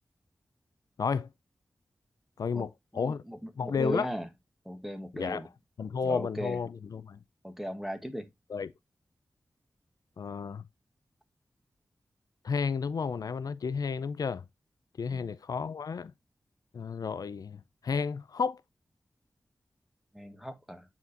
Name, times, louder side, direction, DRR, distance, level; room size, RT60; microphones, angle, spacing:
voice 1, 1.0-1.3 2.4-3.2 3.6-4.1 5.1-5.5 5.8-7.2 8.5-8.7 10.2-10.6 12.4-14.4 15.0-16.1 16.7-18.6, left 5 dB, 70° left, 0.4 m, -32 dB
voice 2, 2.9-4.2 4.7-5.5 6.0-6.6 7.4-8.3 15.1-15.3 20.1-20.8, equal, 5° right, 1.1 m, -37 dB
9.2 x 4.2 x 2.5 m
wide cardioid pair, 60°, 7 cm